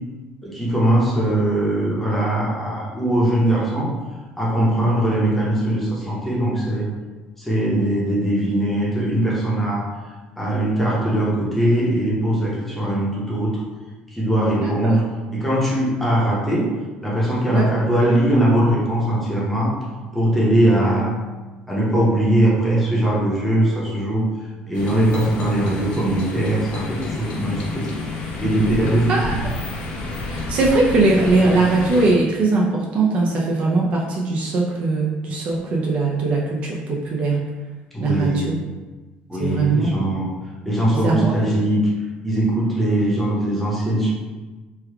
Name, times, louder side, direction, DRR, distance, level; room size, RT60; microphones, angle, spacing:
voice 1, 0.4-3.9 4.4-6.9 7.4-9.9 10.4-13.6 14.1-16.7 17.0-19.7 20.1-21.1 21.7-24.3 24.7-27.9 28.4-29.2 37.9-38.5 39.3-40.3 40.6-41.8 42.2-44.1, right 1 dB, 5° left, -6 dB, 0.8 m, -20 dB
voice 2, 14.6-15.0 17.5-17.7 29.1-29.4 30.3-37.4 38.0-38.5 39.4-39.9 41.0-41.5, right 3 dB, 45° right, -2 dB, 0.5 m, -20 dB
sound 1, 24.7-32.1, left 2 dB, 75° left, 0.8 m, -29 dB
3.2 x 2.3 x 3.4 m, 1.2 s
cardioid pair, 160°, 3 cm